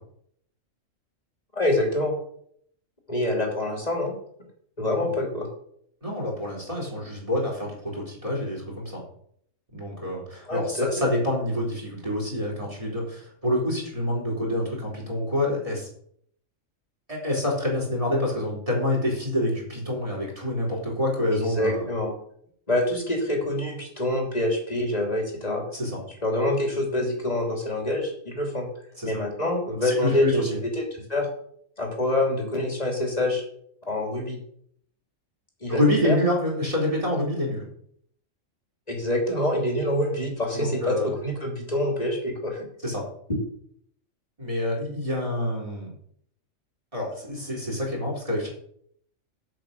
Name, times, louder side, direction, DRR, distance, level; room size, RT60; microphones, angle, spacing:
voice 1, 1.5-2.2 3.1-4.1 4.8-5.5 10.5-11.0 21.3-22.1 22.7-25.6 26.2-28.7 29.0-30.6 30.9-31.3 31.8-33.4 33.9-34.4 35.6-36.2 38.9-42.7, left 1 dB, 30° left, 0 dB, 3.0 m, -26 dB
voice 2, 6.0-9.0 9.7-15.9 17.1-21.8 25.7-26.0 29.0-29.1 29.8-30.5 35.7-37.6 40.5-41.1 42.8-43.0 44.4-45.9 46.9-48.5, left 1 dB, 25° right, -3 dB, 3.9 m, -27 dB
7.8 x 7.7 x 6.7 m, 0.67 s
omnidirectional pair, 1.4 m